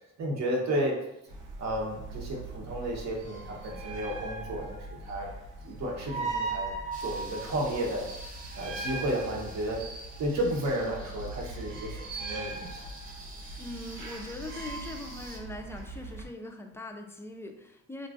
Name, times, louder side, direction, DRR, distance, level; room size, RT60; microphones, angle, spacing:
voice 1, 0.2-1.0 1.6-5.3 5.6-6.7 7.0-8.1 8.6-9.9 10.2-12.8, right 1 dB, 60° right, -1 dB, 1.0 m, -32 dB
sound 1, 1.3-16.2, right 3 dB, 90° right, 0.7 m, -39 dB
sound 2, 6.9-15.4, right 2 dB, 30° right, 0.7 m, -49 dB
voice 2, 13.6-18.1, left 2 dB, 10° left, 3 dB, 0.3 m, -41 dB
3.8 x 2.4 x 2.4 m, 0.87 s
cardioid pair, 90°, 30 cm